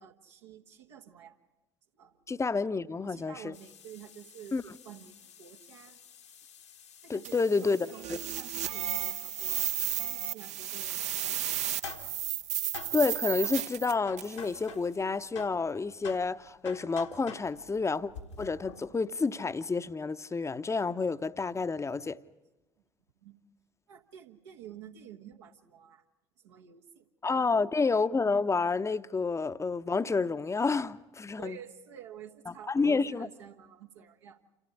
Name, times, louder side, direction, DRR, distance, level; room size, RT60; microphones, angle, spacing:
voice 1, 0.0-1.4 1.9-2.2 3.0-6.0 7.0-9.7 10.0-11.5 23.2-23.4 23.9-26.0 26.4-27.7 31.4-34.4, right 9 dB, 70° right, 1.3 m, -50 dB
voice 2, 2.3-3.5 4.5-4.6 7.1-8.2 12.9-18.1 18.4-22.2 27.2-31.6 32.7-33.3, left 4 dB, 20° left, 0.8 m, -29 dB
sound 1, 3.5-9.6 11.5-15.1 15.4-19.0, left 7 dB, 75° left, 1.6 m, -49 dB
bumble seeds, 7.2-14.4, right 11 dB, 50° right, 0.7 m, -33 dB
28.0 x 14.5 x 10.0 m
figure-of-eight pair, 55°, 15 cm